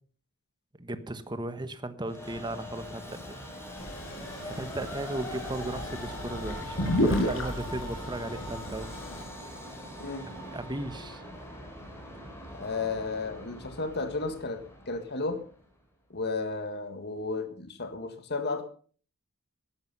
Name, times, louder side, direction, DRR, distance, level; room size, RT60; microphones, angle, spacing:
voice 1, 0.8-3.4 4.4-8.9 10.4-11.2, right 1 dB, 20° right, 10 dB, 1.3 m, -36 dB
Train, 2.1-15.5, equal, 10° left, 4.2 m, -42 dB
sound 1, 3.8-9.2, left 1 dB, 65° left, 5.5 m, -32 dB
voice 2, 12.6-14.6 14.9-15.4 16.1-18.6, left 3 dB, 50° left, 7 dB, 1.8 m, -33 dB
14.5 x 12.0 x 5.5 m, 0.43 s
head